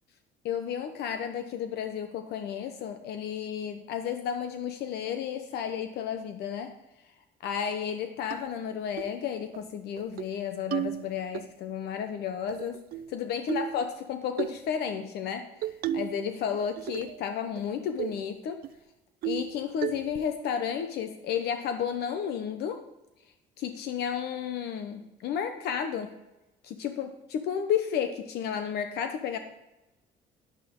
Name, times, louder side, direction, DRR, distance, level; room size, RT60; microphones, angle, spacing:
voice 1, 0.4-6.7 7.4-12.8 13.1-18.7 19.2-22.8 23.6-26.1 26.6-29.4, left 8 dB, 75° left, 7 dB, 0.9 m, -32 dB
sound 1, 8.3-8.4 9.0-9.2 9.5-9.6 10.0-10.3 10.7-11.4 12.5-13.1 13.5-13.8 14.4-14.6 15.6-16.2 16.5-17.2 17.6-17.7 18.0-18.2 18.6-18.7 19.2-19.5 19.8-20.2, right 11 dB, 60° right, 0.5 m, -33 dB
11.0 x 11.0 x 3.7 m, 0.98 s
cardioid pair, 110°, 17 cm